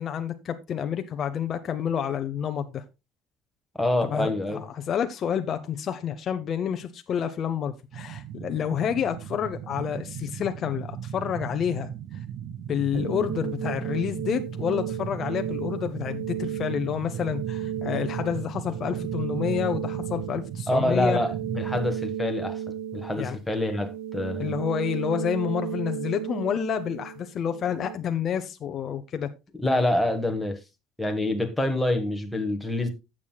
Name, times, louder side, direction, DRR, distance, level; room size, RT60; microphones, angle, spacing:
voice 1, 0.0-2.8 4.0-11.9 12.7-21.2 23.2-23.4 24.4-29.3, left 8 dB, 40° left, 0.7 m, -29 dB
voice 2, 3.7-4.6 20.7-22.6 22.9-24.6 29.6-30.6 31.0-32.9, left 1 dB, 5° left, 1.4 m, -26 dB
sound 1, 7.9-21.9, right 9 dB, 45° right, 0.4 m, -37 dB
sound 2, 12.9-28.0, right 9 dB, 90° right, 1.3 m, -34 dB
15.0 x 7.4 x 2.3 m
cardioid pair, 155°, 0 cm